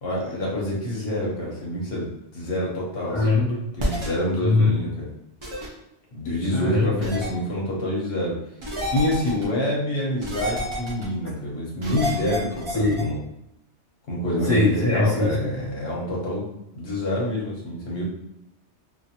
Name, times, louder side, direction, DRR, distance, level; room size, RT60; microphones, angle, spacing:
voice 1, 0.0-3.4 3.8-5.1 6.1-8.4 8.9-13.2 14.1-16.5 16.7-18.0, left 1 dB, 60° left, -3 dB, 1.1 m, -27 dB
voice 2, 3.1-3.7 4.3-4.8 6.5-7.0 12.7-13.1 14.4-15.5, left 3 dB, 25° left, -9 dB, 0.4 m, -22 dB
sound 1, 3.8-4.1 5.4-5.7 7.0-7.3 8.6-9.4 10.2-11.1 11.8-13.0, left 1 dB, 35° right, 0.5 m, -29 dB
2.7 x 2.5 x 2.8 m, 0.85 s
omnidirectional pair, 1.2 m